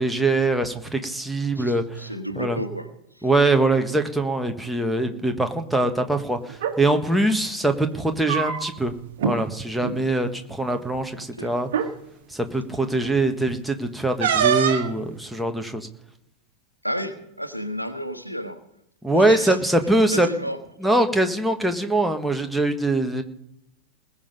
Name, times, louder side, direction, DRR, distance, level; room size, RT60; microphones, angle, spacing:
voice 1, 0.0-2.0 2.4-2.6 3.2-8.9 9.2-11.7 12.3-15.9 19.0-20.3 20.8-23.2, right 2 dB, ahead, 4 dB, 1.5 m, -23 dB
voice 2, 1.5-3.3 11.2-11.5 16.8-18.6 19.1-19.6 20.1-20.6, equal, 90° right, 9 dB, 1.3 m, -32 dB
sound 1, 6.5-6.8 8.0-8.9 9.2-9.4 9.7-10.0 10.9-11.0 11.7-11.9 14.2-14.9, right 8 dB, 55° right, 1.5 m, -23 dB
20.5 x 7.1 x 5.4 m, 0.81 s
figure-of-eight pair, 90°, 0 cm